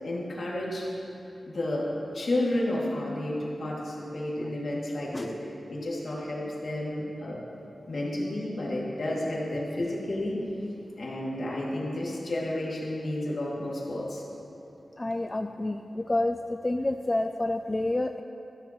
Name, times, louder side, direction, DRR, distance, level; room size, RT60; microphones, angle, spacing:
voice 1, 0.0-0.9 1.5-5.3 5.7-7.4 7.9-10.4 11.0-14.2, left 1 dB, 60° left, -5 dB, 2.5 m, -31 dB
voice 2, 15.0-18.2, left 2 dB, 25° left, 6 dB, 0.3 m, -29 dB
14.0 x 13.5 x 3.1 m, 3.0 s
wide cardioid pair, 105°, 0 cm